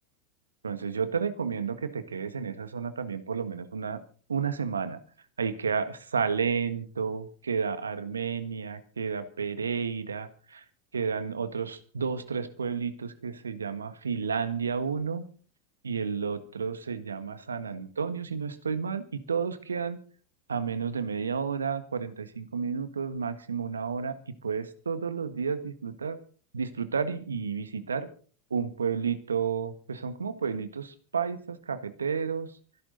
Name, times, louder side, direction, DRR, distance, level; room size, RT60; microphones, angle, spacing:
voice 1, 0.6-4.0 4.3-5.0 5.4-10.6 10.9-15.2 15.8-20.0 20.5-26.2 26.5-28.1 28.5-32.5, right 6 dB, 85° right, 12 dB, 1.6 m, -31 dB
25.0 x 11.5 x 4.0 m, 0.40 s
hypercardioid pair, 85°, 0 cm